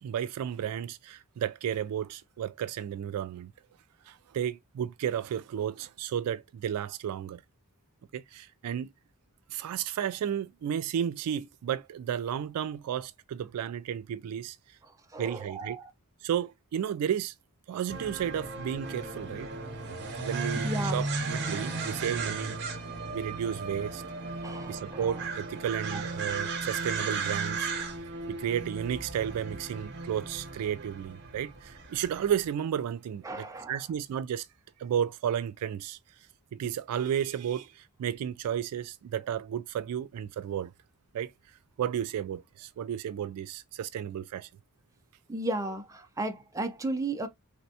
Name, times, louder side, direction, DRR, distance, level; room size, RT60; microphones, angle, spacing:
voice 1, 0.0-3.5 4.1-7.4 8.1-8.9 9.5-14.6 15.2-15.8 16.2-17.3 17.7-19.5 20.2-22.6 23.1-24.0 24.7-27.7 28.3-34.5 34.8-36.0 36.5-40.7 41.1-41.3 41.8-44.5, right 9 dB, 80° right, 0.3 m, -33 dB
voice 2, 15.1-15.9 20.6-21.0 24.4-25.1 25.9-26.0 33.2-33.7 45.3-47.3, right 2 dB, 15° right, 0.5 m, -34 dB
sound 1, 17.9-32.5, right 3 dB, 50° right, 0.7 m, -35 dB
3.3 x 2.1 x 2.7 m
head